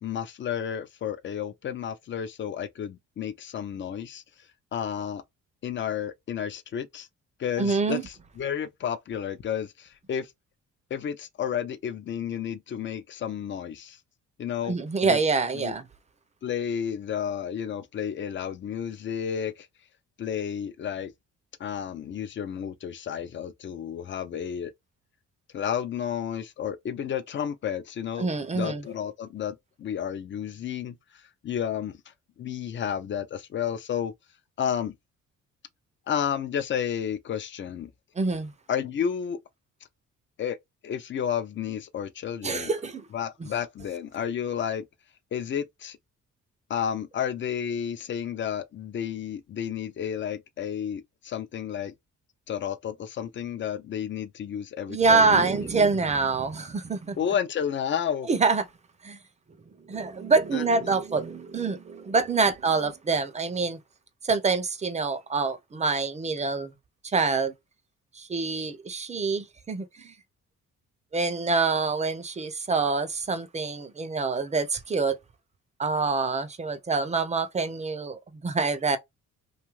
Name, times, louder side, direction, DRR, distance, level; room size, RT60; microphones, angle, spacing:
voice 1, 0.0-4.2 4.7-5.2 5.6-7.1 7.4-10.3 10.9-14.0 14.4-14.8 15.0-15.2 15.5-15.7 16.4-19.7 20.2-21.1 21.6-24.7 25.5-28.3 28.5-34.1 34.6-34.9 36.1-37.9 38.7-39.4 40.4-40.6 40.8-42.7 43.1-44.8 45.3-46.0 46.7-51.9 52.5-55.5 57.2-58.3 60.5-61.0, left 8 dB, 40° left, 0.5 m, -31 dB
voice 2, 7.6-8.0 14.6-15.9 28.2-28.8 38.2-38.5 42.4-43.1 54.9-57.2 58.3-58.6 59.0-59.2 59.9-63.8 64.2-66.7 67.0-67.5 68.2-70.1 71.1-75.2 75.8-79.0, right 4 dB, 25° right, 0.5 m, -26 dB
2.6 x 2.4 x 3.0 m
cardioid pair, 90°, 30 cm